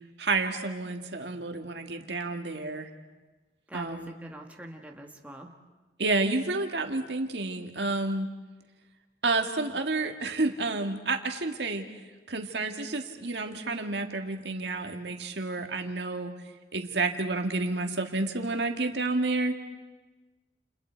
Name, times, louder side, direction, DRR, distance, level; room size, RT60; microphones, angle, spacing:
voice 1, 0.2-2.9 3.7-4.1 6.0-8.3 9.2-11.9 12.3-16.3 16.7-19.6, right 3 dB, 75° right, 5 dB, 1.9 m, -30 dB
voice 2, 3.7-5.5, right 1 dB, 10° right, 2 dB, 1.7 m, -44 dB
30.0 x 29.5 x 4.6 m, 1.2 s
head